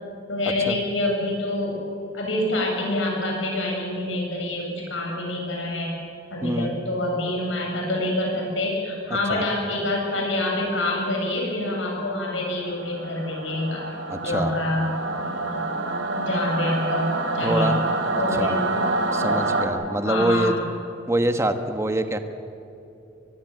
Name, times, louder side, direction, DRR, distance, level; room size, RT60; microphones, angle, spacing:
voice 1, 0.3-1.8 2.1-5.9 6.3-14.8 15.1-15.6 16.1-17.7 18.2-18.6 19.2-19.3 20.0-20.6, left 1 dB, 90° left, 0 dB, 7.8 m, -26 dB
Singing / Musical instrument, 12.5-19.7, right 2 dB, 75° right, 2.9 m, -27 dB
voice 2, 14.1-14.5 17.4-17.8 18.3-18.6 19.1-20.5 21.1-22.2, right 1 dB, 15° right, 7 dB, 1.3 m, -24 dB
23.5 x 21.5 x 7.9 m, 2.8 s
head